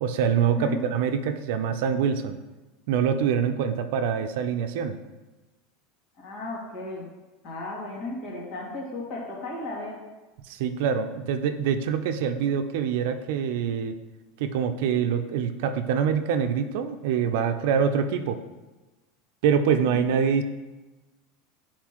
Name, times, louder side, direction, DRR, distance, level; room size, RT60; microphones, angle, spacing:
voice 1, 0.0-2.4 2.9-5.0 10.5-13.9 14.4-18.4 19.4-20.4, right 7 dB, 70° right, 8 dB, 0.5 m, -25 dB
voice 2, 6.2-7.1 7.4-10.0 19.8-20.1, left 2 dB, 45° left, -3 dB, 2.1 m, -34 dB
9.2 x 4.3 x 3.0 m, 1.1 s
supercardioid pair, 140°, 0 cm